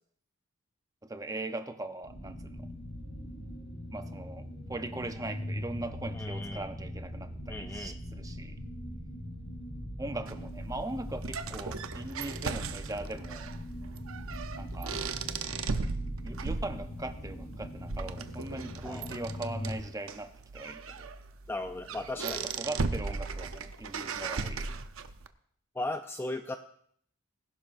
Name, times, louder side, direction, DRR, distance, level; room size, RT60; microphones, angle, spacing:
voice 1, 1.0-2.7 3.9-8.6 10.0-13.6 14.6-15.0 16.2-21.1 22.2-24.8, right 2 dB, 15° right, 8 dB, 0.7 m, -40 dB
sound 1, 2.0-19.8, equal, 65° left, 3.8 m, -41 dB
voice 2, 6.1-6.7 7.5-7.9 18.9-19.1 21.5-22.5 25.8-26.6, left 2 dB, 10° left, 7 dB, 0.4 m, -36 dB
sound 2, 10.3-25.3, right 4 dB, 75° right, 0.7 m, -37 dB
20.0 x 11.5 x 2.6 m, 0.64 s
head